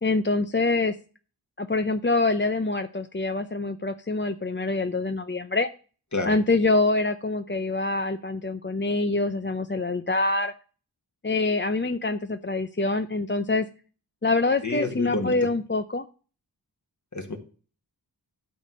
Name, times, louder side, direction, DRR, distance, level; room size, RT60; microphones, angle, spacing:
voice 1, 0.0-1.0 1.6-5.7 6.3-10.5 11.2-13.7 14.2-16.1, left 3 dB, 25° left, 9 dB, 0.6 m, -25 dB
voice 2, 14.6-15.4 17.1-17.4, left 2 dB, 40° left, 4 dB, 2.0 m, -29 dB
12.0 x 4.3 x 6.3 m, 0.38 s
wide cardioid pair, 45°, 43 cm